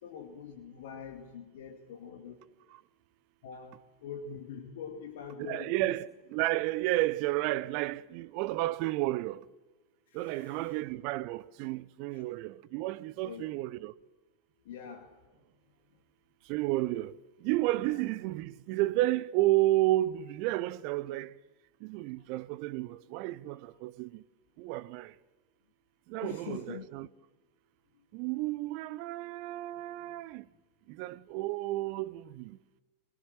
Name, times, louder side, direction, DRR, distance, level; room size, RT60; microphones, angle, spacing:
voice 1, 0.0-2.5 3.4-5.9 10.1-10.8 12.1-12.3 13.2-13.4 14.6-15.1 17.8-18.0 26.2-26.9, left 6 dB, 55° left, 2.3 m, -44 dB
voice 2, 5.4-9.4 10.1-13.9 16.5-17.1 17.4-21.3 21.8-24.2 24.6-25.1 26.1-27.1 28.1-30.4 31.0-32.6, right 17 dB, 45° right, 0.8 m, -31 dB
23.5 x 23.5 x 7.6 m
figure-of-eight pair, 90°, 0 cm